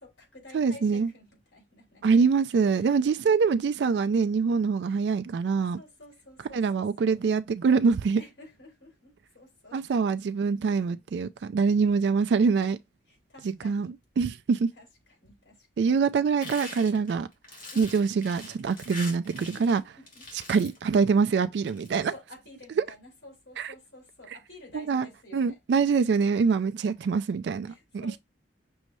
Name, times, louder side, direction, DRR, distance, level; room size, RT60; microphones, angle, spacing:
voice 1, 0.0-2.1 2.8-3.2 5.6-7.2 8.2-10.1 13.1-13.9 14.8-16.2 17.7-18.0 19.5-20.3 22.1-26.1 27.6-28.2, left 2 dB, 85° left, 3.2 m, -51 dB
voice 2, 0.5-1.1 2.0-5.8 6.5-8.2 9.7-12.8 13.6-14.7 15.8-17.3 17.8-19.8 20.5-22.1 22.8-22.9 23.6-23.7 24.7-25.1 25.3-28.1, right 5 dB, 70° right, 0.3 m, -24 dB
sound 1, 16.4-19.8 20.1-20.8 21.5-22.0, left 2 dB, 50° left, 2.0 m, -43 dB
6.2 x 2.7 x 3.0 m
head